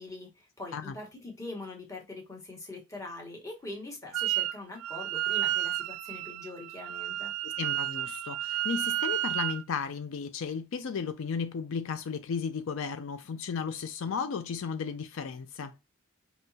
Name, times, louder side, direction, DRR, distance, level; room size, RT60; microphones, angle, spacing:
voice 1, 0.0-7.3, left 2 dB, 15° left, 1.3 m, -43 dB
Wind instrument woodwind instrument, 4.1-4.5 4.8-9.6, right 13 dB, 85° right, 0.3 m, -31 dB
voice 2, 7.4-15.7, left 6 dB, 65° left, 0.4 m, -34 dB
5.4 x 2.9 x 2.7 m
head